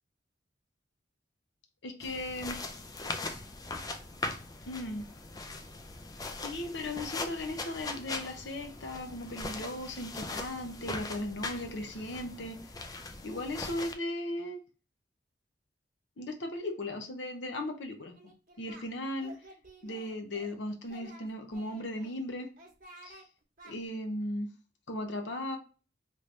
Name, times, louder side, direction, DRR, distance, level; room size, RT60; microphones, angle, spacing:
voice 1, 1.8-2.6 4.7-5.1 6.4-12.6 13.2-14.6 16.2-18.1 18.6-19.3 19.8-22.5 23.0-23.2 23.6-24.5 24.9-25.6, left 1 dB, 70° left, 4 dB, 0.7 m, -37 dB
sound 1, 2.0-13.9, left 3 dB, 20° left, 0.4 m, -40 dB
Singing, 18.2-18.9 19.2-20.5 20.8-22.1 22.6-23.2 23.6-23.7, right 1 dB, 45° right, 0.9 m, -52 dB
3.2 x 2.6 x 3.2 m, 0.35 s
head